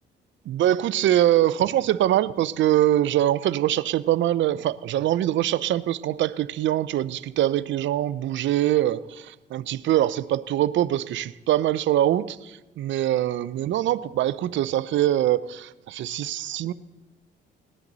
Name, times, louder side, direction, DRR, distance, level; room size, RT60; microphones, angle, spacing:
voice 1, 0.5-16.7, right 13 dB, 70° right, 0.5 m, -23 dB
19.0 x 10.5 x 4.0 m
cardioid pair, 90°, 20 cm